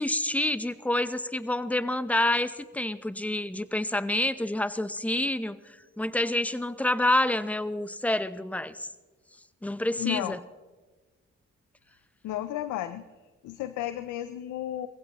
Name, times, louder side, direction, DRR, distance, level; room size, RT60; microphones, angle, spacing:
voice 1, 0.0-5.6 6.0-8.9 9.6-10.4, left 1 dB, 5° left, 14 dB, 0.7 m, -28 dB
voice 2, 10.0-10.4 12.2-13.0 13.4-14.9, left 13 dB, 90° left, 12 dB, 0.6 m, -33 dB
21.0 x 16.0 x 3.0 m, 1.3 s
supercardioid pair, 55°, 29 cm